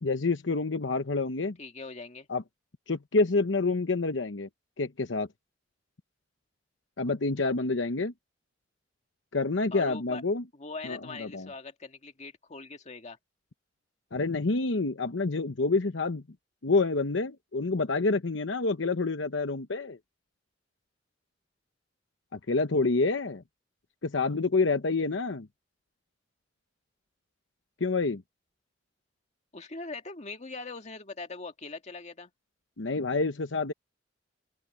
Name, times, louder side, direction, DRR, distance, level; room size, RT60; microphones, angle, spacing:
voice 1, 0.0-1.6 2.3-2.4 2.9-4.5 4.8-5.3 7.0-8.1 9.3-10.4 10.9-11.5 14.1-16.2 16.6-20.0 22.3-23.4 24.0-25.5 27.8-28.2 32.8-33.7, left 3 dB, 75° left, 0.9 m, -28 dB
voice 2, 1.6-2.3 9.7-10.2 10.5-13.2 29.5-32.3, left 3 dB, 40° left, 2.0 m, -41 dB
head